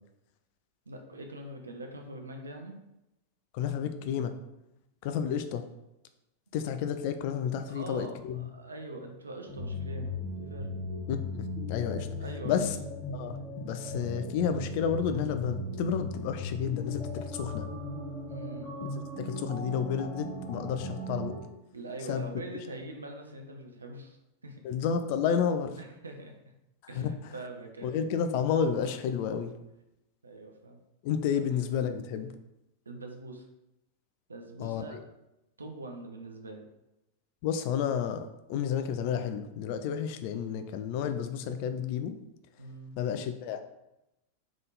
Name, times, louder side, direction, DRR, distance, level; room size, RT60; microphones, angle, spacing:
voice 1, 0.9-2.8 7.7-10.7 12.2-12.7 18.3-18.7 21.7-24.7 25.8-26.4 26.9-28.0 30.2-30.8 32.9-33.5 34.3-35.0 35.6-36.6 42.6-43.0, right 2 dB, 75° right, 3 dB, 0.7 m, -43 dB
voice 2, 3.5-4.3 5.0-5.6 6.5-8.5 11.1-12.1 12.4-12.7 13.1-13.4 13.6-17.7 19.2-21.3 22.1-22.2 24.6-25.8 26.9-27.1 27.8-29.5 31.0-32.3 34.6-35.0 37.4-42.2 43.0-43.6, left 7 dB, 45° left, 8 dB, 0.4 m, -31 dB
sound 1, 9.5-21.4, left 1 dB, 5° left, 1.7 m, -37 dB
3.7 x 3.5 x 4.0 m, 0.90 s
figure-of-eight pair, 90°, 0 cm